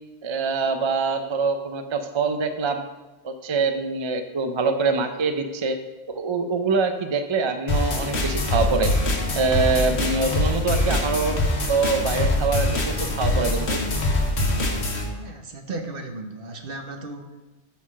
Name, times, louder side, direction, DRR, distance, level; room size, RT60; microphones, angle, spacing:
voice 1, 0.2-2.8 3.2-5.8 6.1-8.9 9.3-11.4 11.7-12.7 13.0-13.8, right 4 dB, 40° right, 7 dB, 0.4 m, -24 dB
sound 1, 7.7-15.1, left 1 dB, 70° left, 1.5 m, -23 dB
voice 2, 15.2-17.4, right 2 dB, 55° right, 5 dB, 1.0 m, -35 dB
6.4 x 5.7 x 6.0 m, 1.1 s
omnidirectional pair, 1.2 m